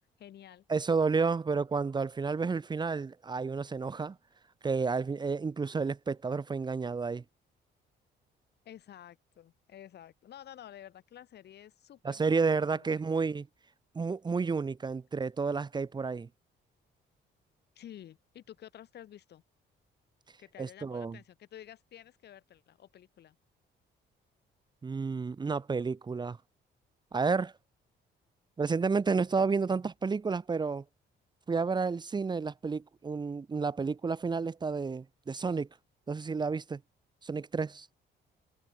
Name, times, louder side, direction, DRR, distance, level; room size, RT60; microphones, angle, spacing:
voice 1, 0.2-0.7 8.6-12.2 12.7-13.0 17.7-19.4 20.4-23.4, left 11 dB, 60° left, 6.8 m, -51 dB
voice 2, 0.7-4.2 4.6-7.2 12.0-13.5 13.9-16.3 20.6-21.2 24.8-26.4 27.1-27.5 28.6-30.8 31.5-35.7 36.1-36.8 37.2-37.9, right 4 dB, 20° right, 2.3 m, -31 dB
cardioid pair, 170°, 20 cm